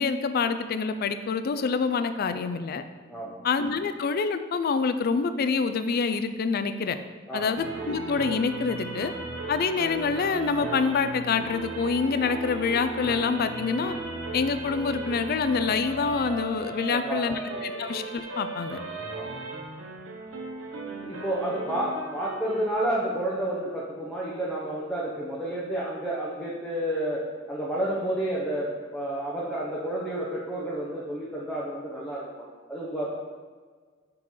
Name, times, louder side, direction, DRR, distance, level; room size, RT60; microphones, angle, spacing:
voice 1, 0.0-2.8 3.4-7.0 7.3-9.1 9.5-14.0 14.3-18.8, left 5 dB, 50° left, 10 dB, 0.4 m, -26 dB
voice 2, 3.1-3.5 7.3-7.5 16.9-17.8 19.1-19.4 21.0-33.1, right 1 dB, 5° left, -8 dB, 0.8 m, -31 dB
sound 1, 7.5-22.7, right 2 dB, 85° right, 0.9 m, -36 dB
9.6 x 3.8 x 3.1 m, 1.5 s
head